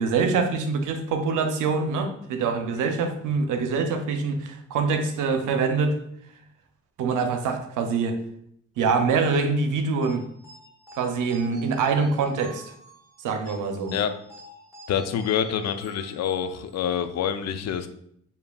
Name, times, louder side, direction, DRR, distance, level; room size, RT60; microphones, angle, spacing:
voice 1, 0.0-6.0 7.0-8.2 8.8-10.2 11.0-12.6 13.2-14.0, right 4 dB, 85° right, 7 dB, 0.7 m, -24 dB
sound 1, 10.0-16.9, equal, 10° right, 1.3 m, -48 dB
voice 2, 14.9-17.9, left 8 dB, 60° left, 9 dB, 0.5 m, -27 dB
6.8 x 2.7 x 2.3 m, 0.68 s
cardioid pair, 85°, 30 cm